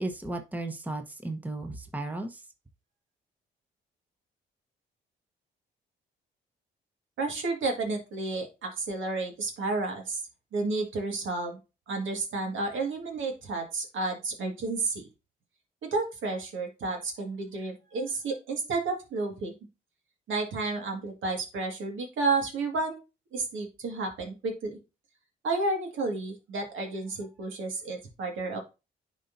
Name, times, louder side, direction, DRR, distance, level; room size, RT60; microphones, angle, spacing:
voice 1, 0.0-2.4, right 2 dB, 10° right, 5 dB, 1.1 m, -35 dB
voice 2, 7.2-10.2 10.5-11.6 11.9-15.1 15.8-19.5 20.3-23.0 23.3-24.8 25.4-28.6, right 3 dB, 70° right, 3 dB, 2.0 m, -31 dB
10.0 x 4.0 x 2.7 m, 0.27 s
supercardioid pair, 55°, 21 cm